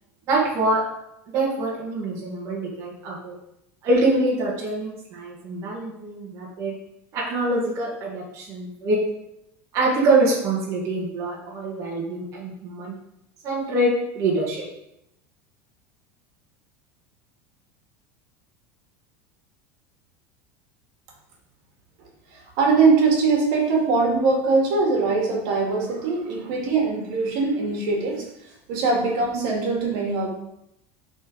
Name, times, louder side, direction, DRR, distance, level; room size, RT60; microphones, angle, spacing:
voice 1, 0.3-0.8 1.3-3.3 3.8-6.7 7.1-9.0 9.7-12.9 13.4-14.6, right 2 dB, 40° right, -5 dB, 2.0 m, -24 dB
voice 2, 22.3-30.3, right 4 dB, 65° right, -1 dB, 2.3 m, -22 dB
8.0 x 4.4 x 5.0 m, 0.82 s
supercardioid pair, 145°, 7 cm